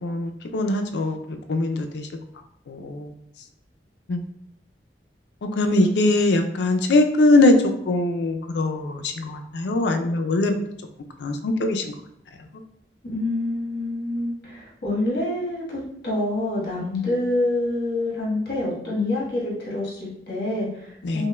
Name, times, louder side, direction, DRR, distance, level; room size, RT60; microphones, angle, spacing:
voice 1, 0.0-1.2 1.5-2.1 2.7-3.1 4.1-4.2 5.4-7.6 7.9-10.6 11.2-11.8 21.0-21.2, left 2 dB, 80° left, 6 dB, 0.4 m, -21 dB
voice 2, 13.0-21.3, left 2 dB, 60° left, -5 dB, 1.4 m, -27 dB
5.2 x 2.1 x 2.2 m, 0.76 s
head